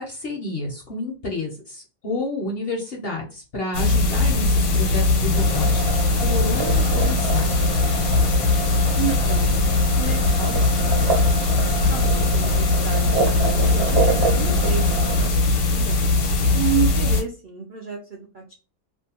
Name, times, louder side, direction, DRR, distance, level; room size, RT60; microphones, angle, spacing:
voice 1, 0.0-5.8 6.2-7.5, left 2 dB, 55° left, -1 dB, 0.7 m, -30 dB
sound 1, 3.7-17.2, left 3 dB, 75° left, 1.1 m, -20 dB
sound 2, 5.3-15.3, right 4 dB, 50° right, 1.0 m, -28 dB
voice 2, 9.0-11.3 11.9-16.0 16.5-18.5, right 8 dB, 65° right, -1 dB, 0.5 m, -31 dB
2.6 x 2.2 x 2.8 m, 0.33 s
omnidirectional pair, 1.6 m